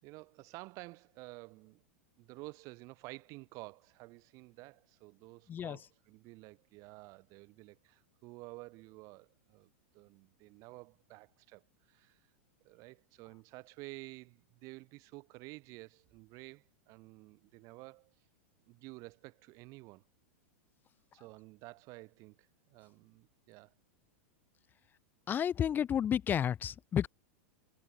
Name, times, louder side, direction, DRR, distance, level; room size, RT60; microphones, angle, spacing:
voice 1, 0.0-1.8 2.2-12.3 12.6-18.1 18.6-20.0 21.1-23.7, right 24 dB, 45° right, 2.3 m, -51 dB
voice 2, 25.3-27.1, left 9 dB, 25° left, 1.0 m, -31 dB
hypercardioid pair, 110°, 7 cm